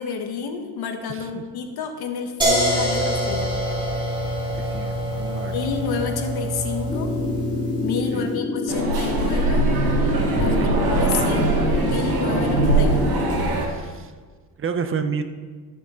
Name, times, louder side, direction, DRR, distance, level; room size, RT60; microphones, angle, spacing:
voice 1, 0.0-3.5 5.5-7.1 7.8-9.6 10.4-13.2, left 6 dB, 65° left, 5 dB, 1.4 m, -30 dB
voice 2, 1.1-1.4 4.5-5.6 8.1-8.4 10.6-10.8 13.6-14.1 14.6-15.2, right 6 dB, 30° right, 8 dB, 0.7 m, -30 dB
sound 1, 2.4-8.2, equal, 10° right, 3.0 m, -25 dB
sound 2, 6.9-13.4, left 4 dB, 20° left, 0.7 m, -28 dB
sound 3, 8.7-13.7, right 2 dB, 60° right, 2.2 m, -21 dB
13.5 x 6.2 x 4.3 m, 1.5 s
cardioid pair, 125°, 40 cm